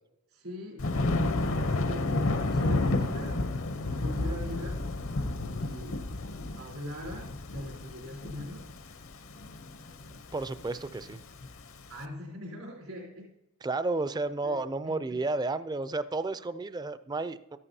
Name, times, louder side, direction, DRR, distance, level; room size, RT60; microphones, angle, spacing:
voice 1, 0.3-0.8 1.4-3.4 3.9-4.8 5.5-6.0 6.6-8.7 11.9-13.3 14.4-14.6 14.8-15.0, left 1 dB, 85° right, -3 dB, 3.7 m, -41 dB
Thunder, 0.8-11.9, left 2 dB, 65° left, 0.8 m, -31 dB
voice 2, 10.3-11.2 13.6-17.6, right 3 dB, 20° right, 13 dB, 0.3 m, -32 dB
13.5 x 11.0 x 2.8 m, 0.91 s
head